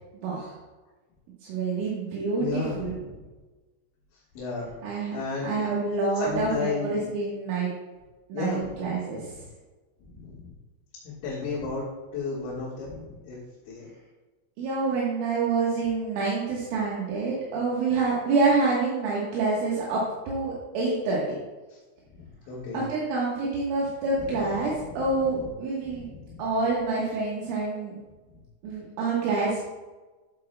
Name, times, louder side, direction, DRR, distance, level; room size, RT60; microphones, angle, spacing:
voice 1, 0.1-0.5 1.4-3.0 4.8-7.7 8.3-9.3 14.6-21.4 22.7-26.1 26.4-27.9 28.6-29.6, right 3 dB, 75° right, -5 dB, 3.6 m, -27 dB
voice 2, 2.4-3.2 4.4-4.7 5.1-5.6 6.2-7.1 8.3-8.8 10.0-10.5 11.0-11.8 12.1-13.4 13.7-13.9 21.7-21.8 22.1-22.8 24.2-25.0 25.8-26.4, left 4 dB, 70° left, -7 dB, 3.9 m, -33 dB
12.0 x 8.3 x 2.2 m, 1.2 s
omnidirectional pair, 6.0 m